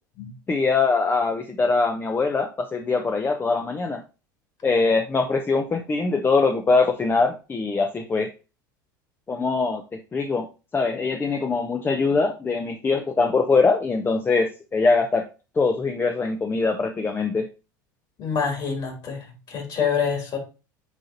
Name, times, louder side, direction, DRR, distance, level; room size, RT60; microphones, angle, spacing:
voice 1, 0.5-4.0 4.6-8.3 9.3-9.8 10.1-10.5 10.7-15.3 15.6-17.5, left 4 dB, 20° left, 5 dB, 0.7 m, -22 dB
voice 2, 18.2-20.4, left 6 dB, 45° left, 2 dB, 3.0 m, -26 dB
9.0 x 3.9 x 2.7 m, 0.31 s
hypercardioid pair, 75°, 11 cm